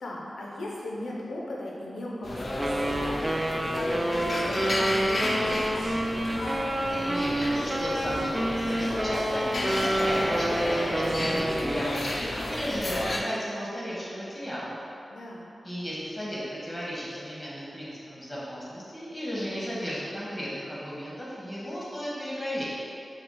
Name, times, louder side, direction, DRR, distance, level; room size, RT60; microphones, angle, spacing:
voice 1, 0.0-6.1 15.1-15.5, left 1 dB, 90° left, -4 dB, 0.6 m, -38 dB
sound 1, 2.2-13.2, left 1 dB, 50° left, 0.5 m, -32 dB
Wind instrument woodwind instrument, 2.6-12.2, right 1 dB, 15° right, 0.3 m, -28 dB
voice 2, 6.6-14.8 15.6-22.6, equal, 10° left, -8 dB, 1.3 m, -35 dB
4.7 x 2.3 x 3.8 m, 2.6 s
cardioid pair, 55°, 0 cm